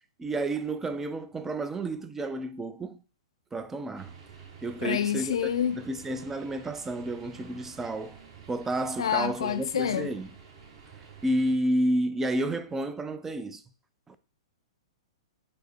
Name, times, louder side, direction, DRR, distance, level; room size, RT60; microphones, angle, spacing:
voice 1, 0.2-3.0 3.5-4.1 4.6-5.4 5.7-8.2 8.5-10.3 11.2-13.6 14.1-14.2, right 1 dB, 10° right, 0.4 m, -30 dB
sound 1, 3.9-11.5, right 6 dB, 45° right, 1.2 m, -50 dB
voice 2, 4.8-5.8 9.0-10.1, left 9 dB, 70° left, 0.4 m, -27 dB
5.3 x 2.0 x 4.3 m
figure-of-eight pair, 110°, 3 cm